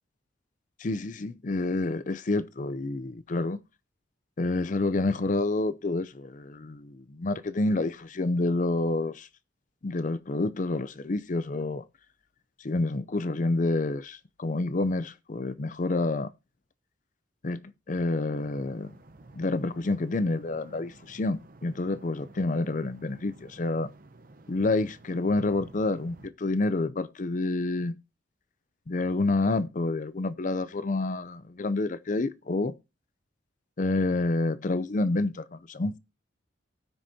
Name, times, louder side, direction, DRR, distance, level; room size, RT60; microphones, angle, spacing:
voice 1, 0.8-3.6 4.4-9.3 9.8-11.8 12.6-16.3 17.4-17.6 17.9-18.9 19.3-23.9 24.5-28.0 28.9-32.7 33.8-36.0, left 2 dB, 40° left, 0.5 m, -28 dB
sound 1, 18.3-26.3, right 2 dB, 45° right, 0.8 m, -52 dB
18.0 x 6.3 x 2.8 m
head